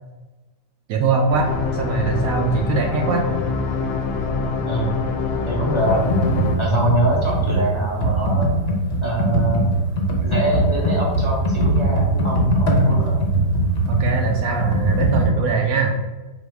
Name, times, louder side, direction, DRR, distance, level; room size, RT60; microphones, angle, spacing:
voice 1, 0.9-3.3 13.9-15.9, right 4 dB, 70° right, 2 dB, 0.9 m, -22 dB
sound 1, 1.3-6.6, left 4 dB, 80° left, 1.1 m, -24 dB
voice 2, 4.7-5.0 5.5-6.0 6.6-8.5 9.0-9.7 10.2-13.2, right 1 dB, 20° left, -4 dB, 0.9 m, -23 dB
Computer keyboard, 5.8-15.3, right 1 dB, 45° left, 0.9 m, -20 dB
4.1 x 2.9 x 4.5 m, 1.2 s
omnidirectional pair, 1.7 m